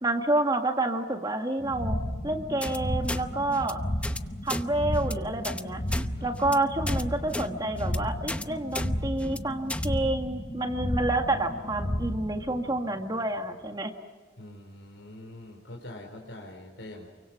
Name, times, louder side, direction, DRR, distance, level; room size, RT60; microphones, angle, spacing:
voice 1, 0.0-2.0 2.2-3.8 4.4-5.8 6.2-14.0, right 2 dB, 20° right, 4 dB, 1.9 m, -28 dB
sound 1, 1.6-13.4, equal, 40° left, 5.8 m, -33 dB
sound 2, 2.6-2.8 3.1-3.2 3.5-3.7 4.0-4.2 4.5-4.6 4.9-5.1 5.4-5.6 5.9-6.1 6.4-6.6 6.9-7.0 7.3-7.5 7.8-8.0 8.3-8.4 8.7-8.9 9.2-9.4 9.7-9.9, left 1 dB, 5° left, 0.8 m, -33 dB
voice 2, 14.4-17.1, left 1 dB, 90° left, -1 dB, 4.3 m, -44 dB
29.0 x 24.5 x 6.0 m, 1.4 s
head